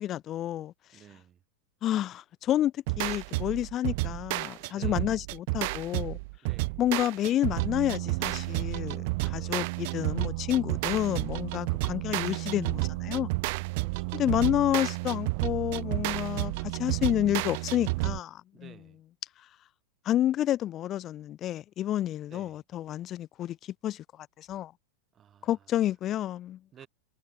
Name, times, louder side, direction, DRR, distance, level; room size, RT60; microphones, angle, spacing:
voice 1, 0.0-0.7 1.8-6.2 6.8-13.3 14.1-18.7 20.1-23.6 23.8-24.0 24.4-24.7 25.4-26.6, left 12 dB, 30° left, 0.3 m, -29 dB
voice 2, 0.9-1.4 4.7-5.1 6.4-6.8 9.4-9.8 13.8-14.3 18.5-19.0 22.3-22.6 25.1-25.8 26.7-26.9, right 9 dB, 25° right, 2.4 m, -54 dB
sound 1, 2.9-18.2, right 26 dB, 50° right, 0.4 m, -31 dB
figure-of-eight pair, 90°, 0 cm